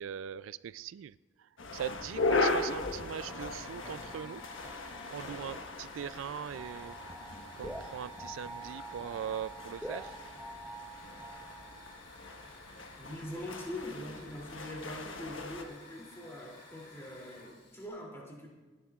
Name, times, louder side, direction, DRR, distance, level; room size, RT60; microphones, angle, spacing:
voice 1, 0.0-4.4 5.1-7.0 7.6-10.2, right 9 dB, 85° right, 17 dB, 0.3 m, -41 dB
sound 1, 1.6-15.6, left 3 dB, 85° left, 1.3 m, -38 dB
sound 2, 3.3-12.0, right 1 dB, 5° right, 0.6 m, -47 dB
Hiss / Fire, 3.4-17.9, left 2 dB, 60° left, 3.1 m, -54 dB
voice 2, 13.0-18.5, left 1 dB, 15° left, -2 dB, 2.7 m, -43 dB
27.0 x 11.0 x 2.4 m, 1.3 s
head